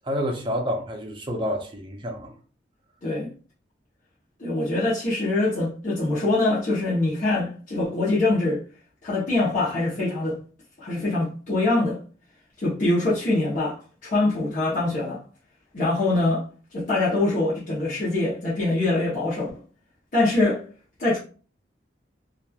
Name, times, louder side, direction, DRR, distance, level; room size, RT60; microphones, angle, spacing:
voice 1, 0.0-2.3, equal, 25° right, 0.5 m, -29 dB
voice 2, 3.0-3.3 4.4-8.6 9.0-10.4 10.8-12.0 12.6-15.2 15.7-16.4 16.7-19.5 20.1-20.6 21.0-21.2, left 2 dB, 45° left, 0.8 m, -24 dB
2.9 x 2.4 x 2.3 m
head